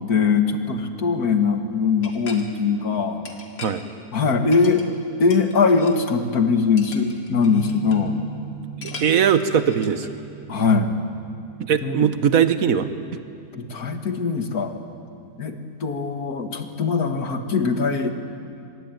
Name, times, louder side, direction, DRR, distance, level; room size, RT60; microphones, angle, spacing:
voice 1, 0.0-3.2 4.1-4.8 5.2-8.2 10.5-10.9 11.8-12.1 13.5-14.7 15.4-18.1, left 5 dB, 65° left, 6 dB, 2.1 m, -21 dB
sound 1, 2.0-2.5 3.3-3.9 4.5-5.0 5.3-6.0 6.8-8.1 8.8-10.1, left 4 dB, 85° left, 2.7 m, -40 dB
sound 2, 7.3-16.0, right 9 dB, 35° left, 2.8 m, -40 dB
voice 2, 9.0-10.1 11.6-12.9, right 8 dB, 60° right, 10 dB, 1.4 m, -20 dB
24.5 x 21.0 x 9.1 m, 2.5 s
omnidirectional pair, 1.7 m